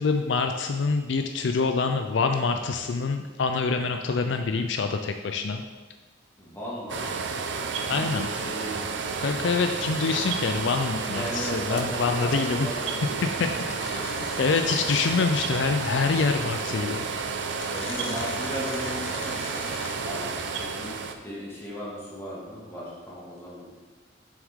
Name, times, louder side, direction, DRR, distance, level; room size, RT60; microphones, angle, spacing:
voice 1, 0.0-5.6 7.9-8.3 9.2-12.7 13.4-14.1 14.4-17.0, left 4 dB, 70° left, 6 dB, 0.4 m, -26 dB
voice 2, 6.4-7.4 7.7-8.9 11.0-14.2 17.7-19.6 20.0-20.9 21.2-23.7, equal, 15° left, -7 dB, 2.1 m, -37 dB
sound 1, 6.9-21.1, right 4 dB, 70° right, 0.6 m, -31 dB
sound 2, 13.7-15.3 16.6-16.7 17.4-20.2, left 5 dB, 90° left, 0.8 m, -41 dB
7.1 x 6.2 x 3.6 m, 1.3 s
head